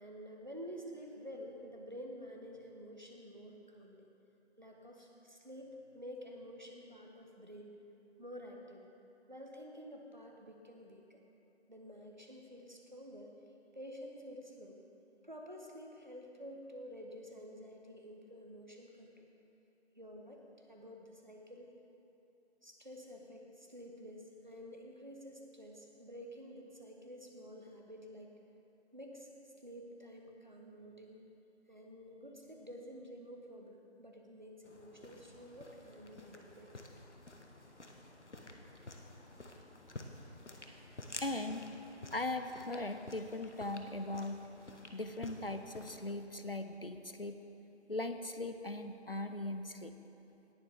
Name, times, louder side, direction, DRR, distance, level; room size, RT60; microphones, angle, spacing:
voice 1, 0.0-4.1 4.6-7.8 8.2-8.8 9.3-11.2 11.7-13.3 13.7-14.8 15.2-19.3 20.0-20.4 20.7-21.7 22.6-28.3 28.9-31.2 31.7-36.7 38.5-38.6 39.3-39.4, equal, 40° right, 1 dB, 1.1 m, -50 dB
sound 1, 34.6-46.1, left 2 dB, 85° left, 1.2 m, -51 dB
voice 2, 41.2-41.7 42.1-44.4 44.9-47.4 47.9-49.9, left 2 dB, 55° left, 8 dB, 0.5 m, -39 dB
18.5 x 7.2 x 3.5 m, 2.9 s
figure-of-eight pair, 180°, 34 cm